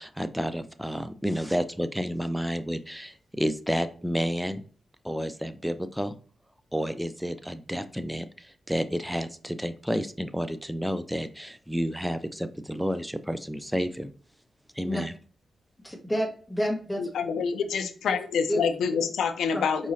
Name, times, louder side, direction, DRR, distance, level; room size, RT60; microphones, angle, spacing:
voice 1, 0.0-4.6 5.0-6.2 6.7-14.1 14.7-15.1, equal, 5° right, 0.4 m, -30 dB
voice 2, 15.8-17.1 17.7-18.2 18.5-18.6 19.5-19.7, equal, 15° left, 1.5 m, -30 dB
voice 3, 17.0-19.9, left 6 dB, 85° left, 0.4 m, -27 dB
4.6 x 3.1 x 2.7 m
cardioid pair, 60°, 0 cm